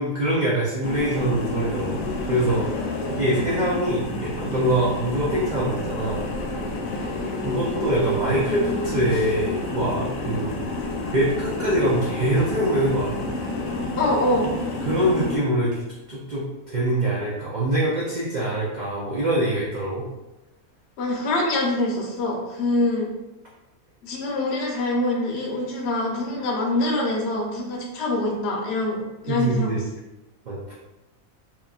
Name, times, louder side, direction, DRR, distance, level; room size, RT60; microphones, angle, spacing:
voice 1, 0.0-2.0 2.3-2.7 3.1-6.2 7.4-10.5 11.1-13.2 14.8-15.8 16.1-20.1 29.3-29.8 30.5-30.7, right 1 dB, 75° right, -6 dB, 0.4 m, -24 dB
sound 1, 0.8-15.4, left 2 dB, 80° left, 0.4 m, -29 dB
voice 2, 7.0-7.4 14.0-14.5 21.0-23.1 24.0-29.0 29.2-29.7, left 1 dB, 60° left, -1 dB, 0.8 m, -25 dB
2.8 x 2.4 x 2.3 m, 0.99 s
omnidirectional pair, 1.5 m